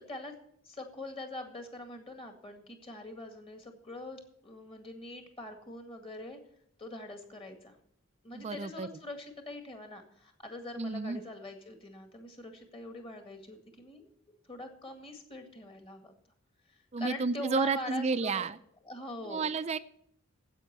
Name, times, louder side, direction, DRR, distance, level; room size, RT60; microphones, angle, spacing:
voice 1, 0.6-6.4 6.8-7.8 8.2-14.1 14.5-16.1 16.7-18.4 18.8-19.5, left 1 dB, 25° left, 5 dB, 1.9 m, -43 dB
voice 2, 8.3-8.9 10.8-11.2 16.9-18.6 19.2-19.8, right 4 dB, 30° right, 14 dB, 0.4 m, -31 dB
9.9 x 8.3 x 8.2 m, 0.69 s
head